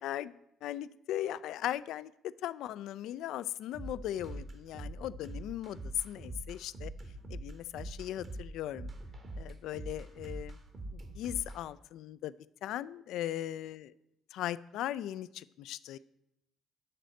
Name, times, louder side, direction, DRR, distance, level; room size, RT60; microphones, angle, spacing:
voice 1, 0.0-6.9 7.3-8.9 9.4-10.6 10.9-12.3 12.6-13.9 14.3-16.0, left 12 dB, 60° left, 17 dB, 0.3 m, -38 dB
sound 1, 3.7-11.6, right 2 dB, 45° right, 1.5 m, -43 dB
11.0 x 4.1 x 7.7 m, 0.83 s
figure-of-eight pair, 50°, 0 cm